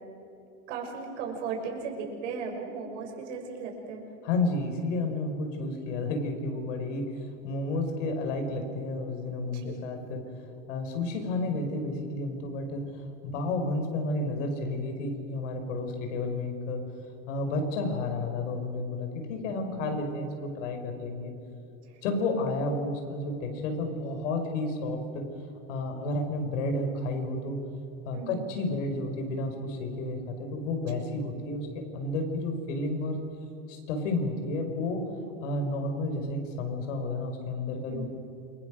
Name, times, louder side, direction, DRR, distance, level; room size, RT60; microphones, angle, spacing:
voice 1, 0.7-4.0 9.5-9.8 21.8-22.0 28.1-28.5 31.0-31.2 37.9-38.1, right 5 dB, 75° right, 1 dB, 6.7 m, -36 dB
voice 2, 4.2-10.2 10.7-12.8 13.2-16.8 17.3-21.3 22.0-25.2 25.7-27.6 28.1-31.7 31.9-33.2 33.7-35.0 35.4-38.1, left 2 dB, 80° left, 4 dB, 5.7 m, -31 dB
28.5 x 24.0 x 6.5 m, 2.6 s
supercardioid pair, 155°, 37 cm